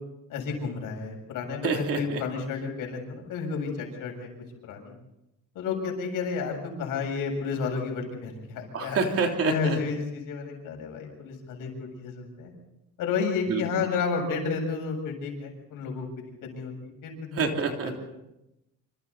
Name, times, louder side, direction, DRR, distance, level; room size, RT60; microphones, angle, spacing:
voice 1, 0.3-4.3 4.6-4.9 5.5-12.5 13.0-17.4, left 5 dB, 75° left, 2 dB, 7.5 m, -31 dB
voice 2, 1.6-2.2 8.7-9.8 13.5-13.6 17.3-18.1, right 4 dB, 45° right, 2 dB, 3.4 m, -27 dB
27.0 x 27.0 x 4.2 m, 0.91 s
cardioid pair, 165°, 32 cm